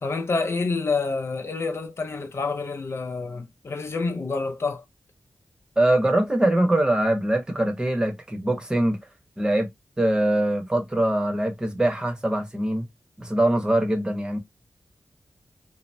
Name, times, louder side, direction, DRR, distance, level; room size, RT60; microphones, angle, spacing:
voice 1, 0.0-4.8, left 4 dB, 50° left, 0.5 m, -28 dB
voice 2, 5.8-9.0 9.4-9.7 10.0-12.8 13.2-14.4, right 1 dB, 15° right, 0.9 m, -23 dB
2.7 x 2.0 x 3.1 m
wide cardioid pair, 115°, 6 cm